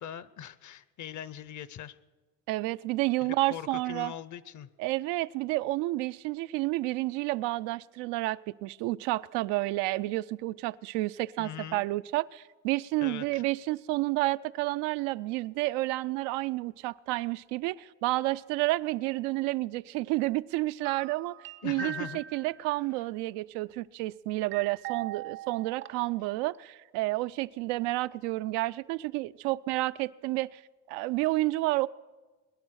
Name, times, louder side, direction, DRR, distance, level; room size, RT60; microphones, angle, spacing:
voice 1, 0.0-2.0 3.2-4.7 11.4-11.9 13.0-13.4 21.6-22.2, left 9 dB, 45° left, 0.7 m, -41 dB
voice 2, 2.5-4.1 4.8-30.6 30.9-31.9, right 19 dB, 85° right, 0.5 m, -30 dB
sound 1, 20.8-22.7 24.5-26.3 26.5-26.6, right 10 dB, 30° right, 0.5 m, -41 dB
21.0 x 10.5 x 6.3 m
cardioid pair, 105°, 40 cm